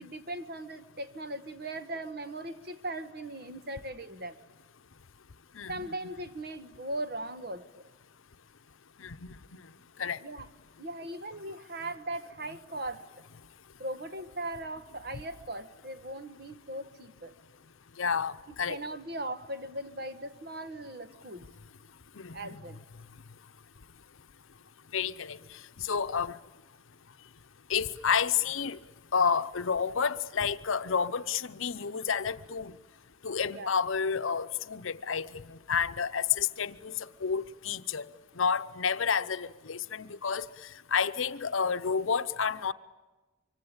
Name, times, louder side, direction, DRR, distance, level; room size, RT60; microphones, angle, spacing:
voice 1, 0.0-4.4 5.7-7.8 10.2-10.5 10.8-13.0 13.8-17.3 18.7-21.5 22.3-22.8 33.5-33.7, right 1 dB, 50° right, 1.4 m, -39 dB
voice 2, 5.6-5.9 9.0-9.6 10.0-10.2 18.0-18.8 22.2-22.6 24.9-25.4 25.8-26.3 27.7-28.8 29.1-32.7 33.2-36.9 37.2-38.1 38.4-40.5 40.9-42.7, left 6 dB, 80° left, 0.8 m, -30 dB
25.0 x 24.5 x 8.8 m
head